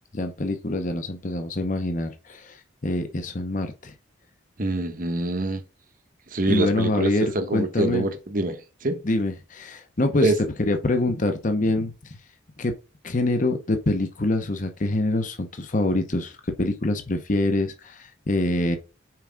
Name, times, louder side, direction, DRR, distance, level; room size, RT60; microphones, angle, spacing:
voice 1, 0.1-3.9 6.5-8.1 9.0-10.3 10.6-12.2 12.6-12.7 13.0-18.8, left 2 dB, 40° left, 0.8 m, -25 dB
voice 2, 4.6-5.6 6.3-9.0 10.2-10.4, right 2 dB, 45° right, 1.1 m, -25 dB
5.9 x 4.8 x 3.5 m
head